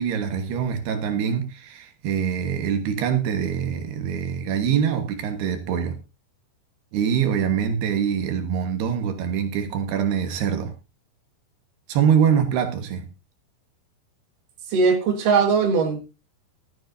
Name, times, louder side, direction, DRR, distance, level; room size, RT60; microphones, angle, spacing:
voice 1, 0.0-6.0 6.9-10.7 11.9-13.1, right 8 dB, 80° right, 3.3 m, -24 dB
voice 2, 14.7-16.0, right 5 dB, 60° right, 3.2 m, -19 dB
16.5 x 13.0 x 2.6 m
omnidirectional pair, 4.6 m